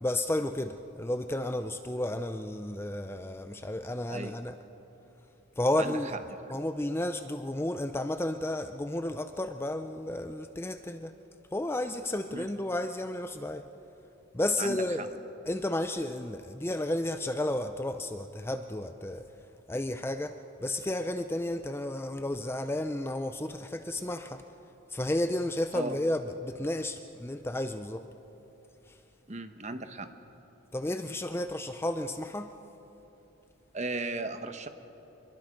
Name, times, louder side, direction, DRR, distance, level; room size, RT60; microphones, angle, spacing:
voice 1, 0.0-4.6 5.6-6.2 6.5-11.1 11.5-13.7 14.3-15.1 15.5-19.3 19.7-24.4 24.9-28.0 28.9-29.0 30.7-32.5, left 1 dB, 10° left, 8 dB, 0.5 m, -32 dB
voice 2, 14.6-15.1 25.7-26.0 29.3-30.1 33.7-34.7, right 3 dB, 35° right, 8 dB, 1.1 m, -36 dB
26.5 x 22.0 x 5.2 m, 3.0 s
head